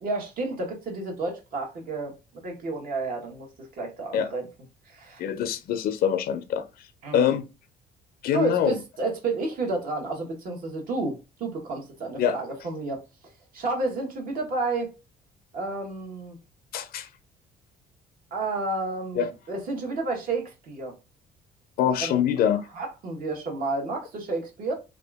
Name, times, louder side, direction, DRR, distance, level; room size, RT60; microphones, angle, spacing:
voice 1, 0.0-4.5 4.9-5.2 7.0-7.4 8.3-13.0 13.5-14.9 15.5-16.4 18.3-20.9 22.0-22.1 22.7-24.7, right 3 dB, 55° right, 1.2 m, -31 dB
voice 2, 5.2-6.7 7.1-7.4 8.2-8.8 12.2-12.4 16.7-17.1 19.1-19.3 21.8-22.7, left 9 dB, 65° left, 0.4 m, -24 dB
2.7 x 2.4 x 3.4 m
cardioid pair, 110°, 17 cm